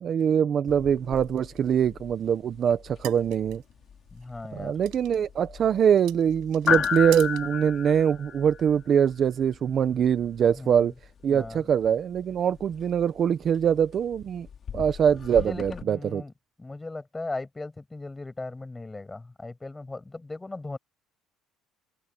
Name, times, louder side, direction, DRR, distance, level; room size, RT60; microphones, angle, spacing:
voice 1, 0.0-3.6 4.5-10.9 11.2-14.5 14.7-16.2, right 8 dB, 40° right, 1.0 m, -23 dB
sound 1, 0.7-15.8, left 7 dB, 40° left, 4.3 m, -36 dB
sound 2, 1.2-8.1, right 19 dB, 75° right, 7.2 m, -46 dB
voice 2, 4.1-4.7 10.5-10.9 11.3-11.6 15.3-16.3 16.6-20.8, left 2 dB, 15° left, 6.9 m, -38 dB
open air
cardioid pair, 130°, 0 cm